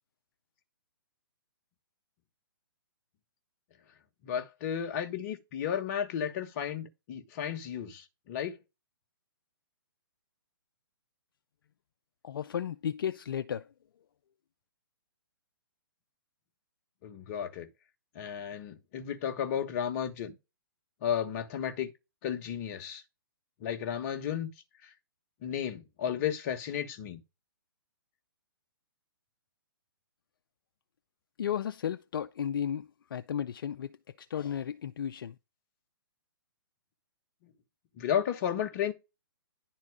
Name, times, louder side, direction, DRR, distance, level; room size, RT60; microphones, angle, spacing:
voice 1, 4.2-8.6 17.0-17.7 18.1-20.4 21.0-21.9 22.2-23.0 23.6-24.5 24.8-24.9 25.4-27.2 38.0-38.9, left 9 dB, 40° left, 1.3 m, -33 dB
voice 2, 12.2-13.7 31.4-35.4, left 9 dB, 65° left, 0.5 m, -34 dB
10.5 x 4.1 x 4.8 m
hypercardioid pair, 140°, 12 cm